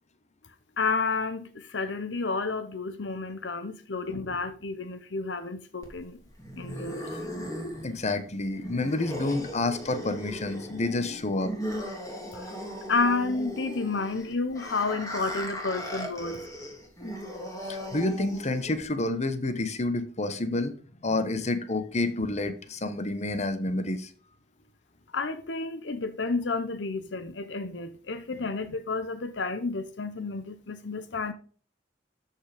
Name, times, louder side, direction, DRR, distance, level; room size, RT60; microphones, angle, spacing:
voice 1, 0.8-6.2 6.6-7.2 12.3-12.6 12.9-16.4 25.1-31.3, left 3 dB, 75° left, 0.9 m, -31 dB
sound 1, 5.8-18.8, equal, 20° left, 2.9 m, -38 dB
voice 2, 7.8-11.5 17.6-20.8 21.0-24.1, left 2 dB, 40° left, 1.1 m, -29 dB
13.0 x 5.8 x 5.1 m
head